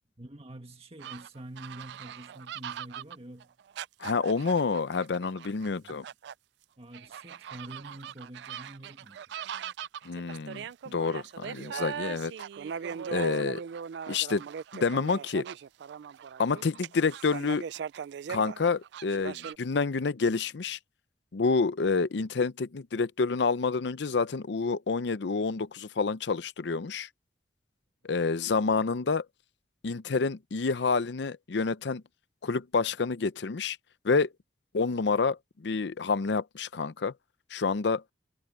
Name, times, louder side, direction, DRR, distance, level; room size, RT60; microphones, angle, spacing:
voice 1, 0.2-3.6 5.6-6.1 6.8-9.2, right 1 dB, 30° right, 1.9 m, -46 dB
sound 1, 1.0-6.3 6.9-19.6, right 7 dB, 60° right, 0.3 m, -40 dB
voice 2, 4.0-6.0 10.0-10.6 10.9-12.3 13.1-13.6 14.1-14.4 14.7-15.5 16.4-17.6 18.3-20.8 21.3-27.1 28.0-29.3 29.8-32.0 32.4-33.8 34.0-34.3 34.7-37.1 37.5-38.0, left 4 dB, 65° left, 0.5 m, -28 dB
head